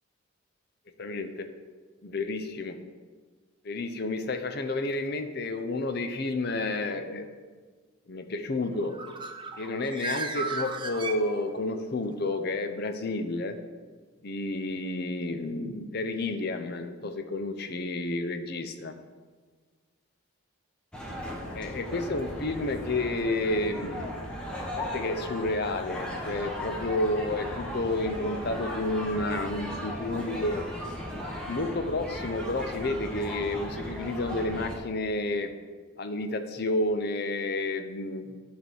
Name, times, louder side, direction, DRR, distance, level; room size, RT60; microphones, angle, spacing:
voice 1, 1.0-1.5 2.0-2.8 3.6-7.3 8.1-8.9 9.6-13.6 14.2-18.9 21.5-24.2 24.8-30.6 31.5-35.5 36.0-38.4, left 2 dB, 45° left, 7 dB, 0.6 m, -30 dB
Bird, 8.7-11.8, right 3 dB, 20° right, 0.5 m, -36 dB
sound 1, 20.9-34.8, equal, 5° left, 0.9 m, -37 dB
10.0 x 3.4 x 6.1 m, 1.5 s
head